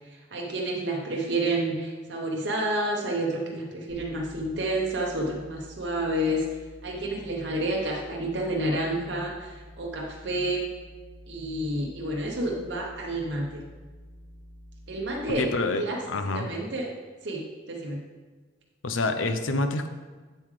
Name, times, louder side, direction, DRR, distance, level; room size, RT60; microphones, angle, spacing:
voice 1, 0.3-6.5 6.8-10.6 11.3-13.6 14.9-15.5 15.8-16.0 16.3-16.9 17.2-18.0, right 1 dB, 65° right, -1 dB, 0.9 m, -29 dB
sound 1, 3.9-15.3, equal, 40° left, 2.4 m, -49 dB
voice 2, 15.4-15.8 16.1-16.5 18.8-19.9, left 3 dB, 85° left, 8 dB, 0.7 m, -27 dB
7.8 x 7.3 x 3.3 m, 1.4 s
head